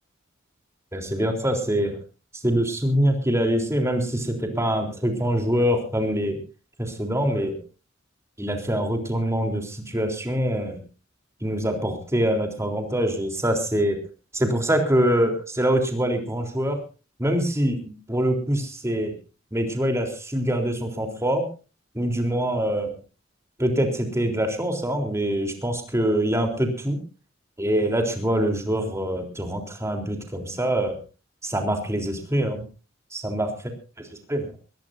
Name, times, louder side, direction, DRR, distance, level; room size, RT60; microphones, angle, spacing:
voice 1, 0.9-2.0 2.4-6.4 6.8-7.6 8.4-10.8 11.4-14.0 14.3-16.8 17.2-19.1 19.5-21.5 21.9-23.0 23.6-27.0 27.6-31.0 31.4-32.6 33.1-33.5 34.3-34.5, equal, 15° right, 4 dB, 3.7 m, -24 dB
22.0 x 18.0 x 2.7 m, 0.33 s
head